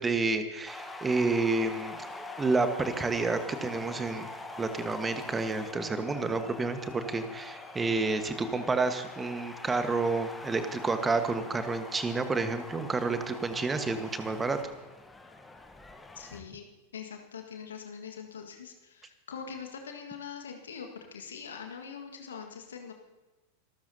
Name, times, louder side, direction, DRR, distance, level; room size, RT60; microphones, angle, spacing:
voice 1, 0.0-2.1 2.4-4.3 4.6-14.6, right 3 dB, 15° right, 9 dB, 1.3 m, -29 dB
College Football Game, 0.7-16.4, left 2 dB, 10° left, 1.2 m, -44 dB
voice 2, 16.1-16.7 16.9-22.9, left 6 dB, 65° left, 3 dB, 1.7 m, -43 dB
26.0 x 13.5 x 2.8 m, 1.1 s
figure-of-eight pair, 90°, 0 cm